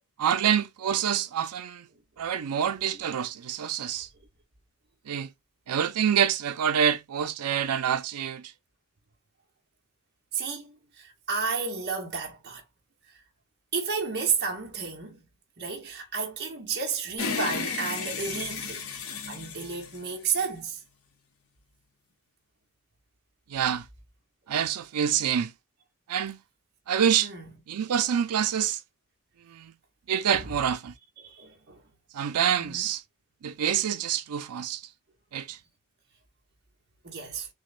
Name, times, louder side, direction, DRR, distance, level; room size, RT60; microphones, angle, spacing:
voice 1, 0.2-1.9 2.2-4.1 5.1-5.3 5.7-8.5 23.5-23.9 24.5-25.5 26.1-26.4 26.9-27.3 27.7-28.8 29.5-29.7 30.1-30.9 32.1-33.0 33.4-34.8 35.3-35.6, right 8 dB, 85° right, 0.5 m, -26 dB
voice 2, 10.3-12.6 13.7-15.2 15.6-18.8 19.3-20.8 27.2-27.5 30.3-30.5 31.2-31.8 32.5-32.9 37.0-37.5, right 5 dB, 45° right, 1.0 m, -32 dB
sound 1, 17.2-20.7, left 5 dB, 70° left, 0.9 m, -34 dB
6.2 x 2.2 x 2.5 m
head